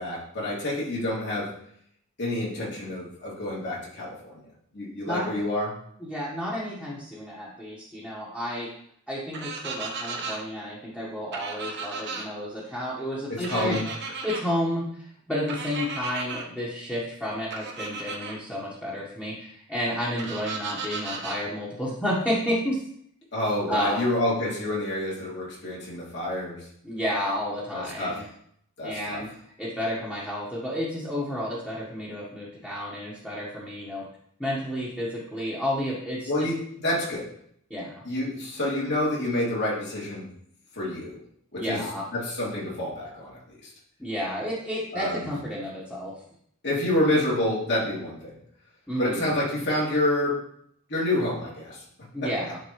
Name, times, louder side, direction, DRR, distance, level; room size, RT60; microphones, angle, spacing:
voice 1, 0.0-1.5 2.2-4.5 4.7-5.7 13.3-13.8 23.3-26.7 27.7-28.3 28.8-29.2 36.3-37.3 38.0-40.3 40.7-41.2 41.5-41.8 42.1-43.7 44.9-45.3 46.6-48.3 49.0-50.5 50.9-51.8 52.2-52.3, left 1 dB, 55° left, -5 dB, 2.6 m, -28 dB
voice 2, 5.0-5.4 6.0-8.7 9.1-13.8 14.2-22.8 23.7-24.0 26.8-28.2 28.8-29.3 29.6-34.0 34.4-36.5 37.7-38.0 41.5-42.0 44.0-46.1 48.9-49.3 52.1-52.6, equal, 5° left, -8 dB, 1.4 m, -31 dB
sound 1, 9.3-10.4 11.3-12.2 13.4-14.4 15.5-16.4 17.5-18.3 20.2-21.4, right 4 dB, 55° right, 1.0 m, -35 dB
11.0 x 3.8 x 3.2 m, 0.67 s
head